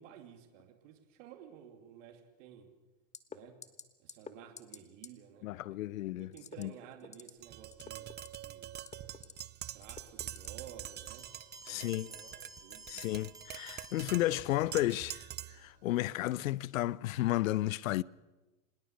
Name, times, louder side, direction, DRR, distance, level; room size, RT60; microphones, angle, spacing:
voice 1, 0.0-2.7 3.3-3.6 4.0-5.9 6.1-8.7 9.7-11.3 11.7-12.9, right 9 dB, 65° right, 2.7 m, -54 dB
sound 1, 3.1-3.4 3.6-3.8 4.1-4.3 4.6-4.8 5.0-5.1 6.3-6.6 7.0-7.3 7.7-8.4 8.7-9.4 9.8-10.5 10.9-11.0, left 6 dB, 15° left, 1.4 m, -48 dB
voice 2, 5.4-6.7 11.6-12.1 12.9-18.0, left 16 dB, 80° left, 0.7 m, -33 dB
Tap, 7.4-15.7, right 12 dB, 25° right, 0.6 m, -45 dB
sound 2, 11.1-14.8, right 3 dB, 10° right, 2.8 m, -53 dB
25.5 x 20.5 x 6.6 m
hypercardioid pair, 110°, 40 cm